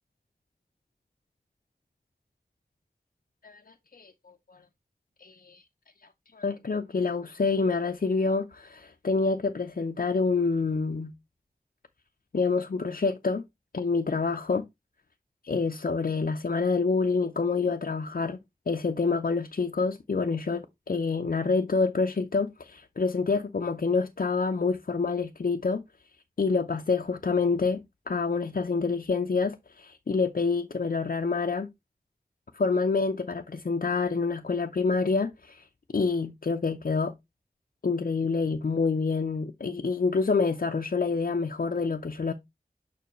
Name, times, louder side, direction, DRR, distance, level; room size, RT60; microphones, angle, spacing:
voice 1, 3.4-4.6 5.2-5.6 6.3-11.1 12.3-13.4 13.7-14.6 15.4-18.4 18.7-25.8 26.4-27.8 28.1-31.7 32.5-35.7 35.9-37.1 37.8-42.3, left 4 dB, 65° left, 0.6 m, -27 dB
6.9 x 5.4 x 3.1 m
wide cardioid pair, 50°, 16 cm